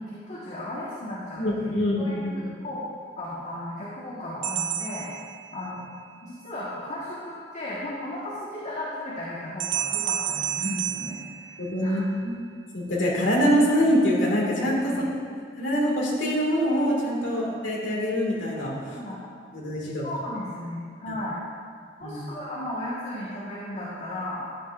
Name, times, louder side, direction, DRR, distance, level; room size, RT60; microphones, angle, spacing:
voice 1, 0.0-2.8 3.2-5.1 5.5-5.9 6.2-11.6 11.8-12.0 14.8-15.0 17.3-17.5 18.9-19.2 20.0-21.4 22.0-24.5, left 1 dB, 40° left, -8 dB, 1.6 m, -35 dB
voice 2, 1.4-2.5 11.6-12.3 12.7-15.1 15.6-19.0 19.5-20.0 21.1-21.2 22.0-22.2, equal, 85° left, -4 dB, 2.3 m, -24 dB
sound 1, 4.4-6.0 9.6-12.1, right 10 dB, 65° right, 0.5 m, -31 dB
14.0 x 9.3 x 2.6 m, 2.2 s
head